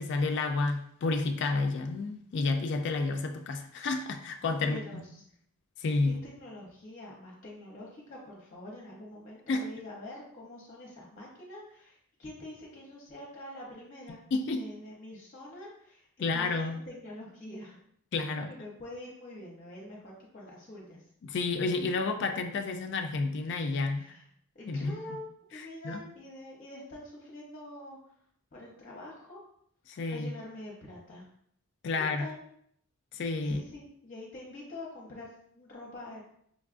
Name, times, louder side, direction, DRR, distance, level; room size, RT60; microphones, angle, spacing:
voice 1, 0.0-5.0 5.8-6.2 9.5-9.6 14.3-14.6 16.2-16.8 18.1-18.5 21.2-24.1 24.7-25.0 25.8-26.0 29.9-30.3 31.8-32.3 33.1-33.6, left 3 dB, 55° left, 5 dB, 0.3 m, -30 dB
voice 2, 4.6-5.2 6.0-14.2 14.5-17.8 18.3-21.1 24.0-24.3 24.5-25.3 25.5-28.1 28.5-29.4 29.9-31.3 32.0-32.4 33.4-36.2, left 1 dB, 35° left, -3 dB, 0.8 m, -46 dB
5.1 x 2.4 x 2.4 m, 0.69 s
head